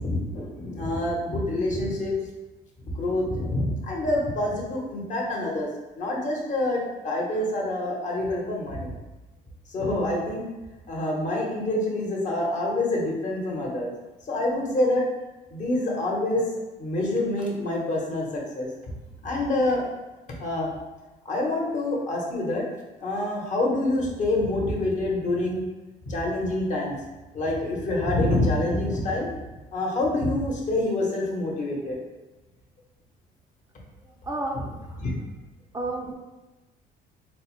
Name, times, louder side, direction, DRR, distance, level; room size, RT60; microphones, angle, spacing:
voice 1, 0.0-2.1 2.8-5.7 5.9-8.9 9.7-10.4 10.9-13.9 14.3-15.0 15.5-16.4 16.8-18.7 19.2-19.8 20.4-20.7 21.2-22.6 23.0-25.6 26.1-27.0 27.3-29.3 29.7-32.0 35.0-35.1, left 1 dB, 45° left, -2 dB, 1.0 m, -26 dB
voice 2, 34.0-34.8 35.7-36.1, right 2 dB, 20° right, 0 dB, 0.3 m, -31 dB
4.1 x 2.1 x 3.0 m, 1.1 s
cardioid pair, 110°, 17 cm